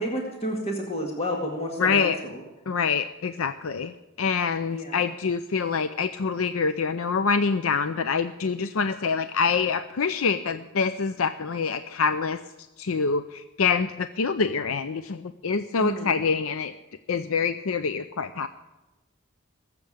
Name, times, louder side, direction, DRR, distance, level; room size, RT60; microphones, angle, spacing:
voice 1, 0.0-2.4 4.7-5.1 15.8-16.1, equal, 30° left, 0 dB, 2.0 m, -30 dB
voice 2, 1.8-2.2 2.7-12.4 12.8-16.7 17.1-18.5, left 5 dB, 85° left, 11 dB, 0.6 m, -26 dB
19.5 x 7.8 x 8.8 m, 1.1 s
head